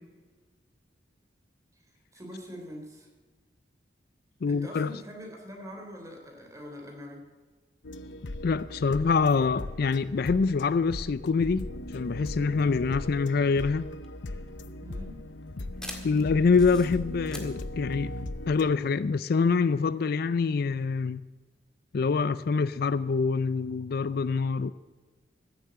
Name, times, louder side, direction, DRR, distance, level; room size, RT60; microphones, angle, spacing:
voice 1, 2.1-3.1 4.5-7.2 14.8-15.2, equal, 20° right, 3.4 m, -43 dB
voice 2, 4.4-4.9 8.4-13.9 16.0-18.1 18.5-21.2 21.9-24.7, left 4 dB, 60° left, 0.4 m, -25 dB
sound 1, 7.8-18.7, left 1 dB, 85° left, 0.8 m, -38 dB
sound 2, 14.0-19.0, left 1 dB, 5° left, 1.8 m, -46 dB
15.0 x 8.3 x 7.7 m
head